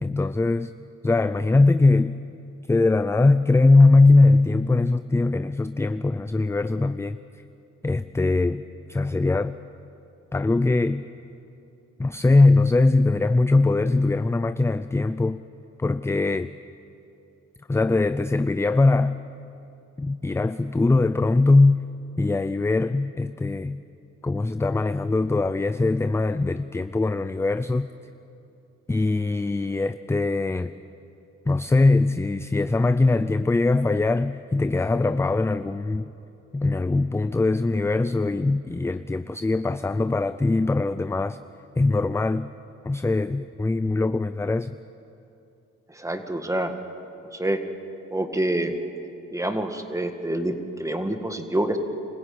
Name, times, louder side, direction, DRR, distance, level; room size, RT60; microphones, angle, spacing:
voice 1, 0.0-0.7 1.0-2.2 2.7-7.2 7.8-8.6 8.9-9.6 10.3-11.1 12.0-15.4 15.8-16.5 17.7-19.2 20.0-21.8 22.2-23.8 24.2-27.9 28.9-30.7 31.5-36.1 36.5-41.4 41.8-42.5 42.8-44.8, left 3 dB, 10° left, 12 dB, 0.4 m, -21 dB
voice 2, 45.9-46.7 47.3-47.6 48.1-48.7 49.3-51.8, right 1 dB, 10° right, 6 dB, 1.9 m, -27 dB
26.0 x 15.5 x 8.7 m, 2.8 s
cardioid pair, 90°, 30 cm